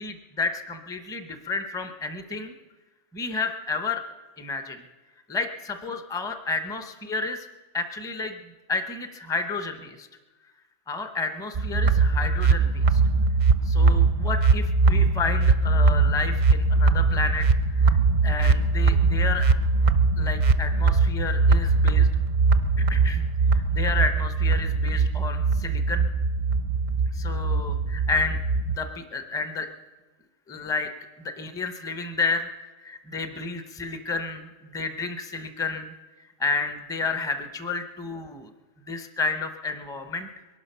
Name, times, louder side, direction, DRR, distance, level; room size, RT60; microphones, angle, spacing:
voice 1, 0.0-2.5 3.1-4.0 4.4-4.8 5.3-7.5 7.7-8.4 8.7-10.1 10.9-13.0 13.6-17.5 17.8-18.0 18.2-19.5 20.2-22.1 22.8-23.2 23.5-26.1 27.1-28.4 28.6-29.7 30.5-30.9 31.2-32.5 32.8-35.9 36.4-38.5 38.9-40.3, left 4 dB, 5° left, 7 dB, 0.6 m, -31 dB
sound 1, 11.6-28.8, right 4 dB, 50° right, 0.5 m, -21 dB
21.5 x 12.0 x 5.6 m, 1.3 s
omnidirectional pair, 1.4 m